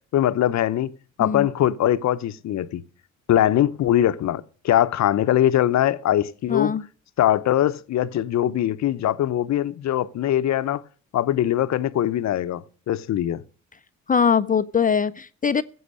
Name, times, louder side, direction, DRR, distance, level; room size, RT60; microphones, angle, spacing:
voice 1, 0.1-0.9 1.2-2.8 3.3-6.8 7.2-10.8 11.1-13.4, left 12 dB, 65° left, 0.8 m, -22 dB
voice 2, 6.5-6.8 14.1-15.6, left 6 dB, 30° left, 0.5 m, -21 dB
15.0 x 7.8 x 6.4 m
cardioid pair, 90°, 30 cm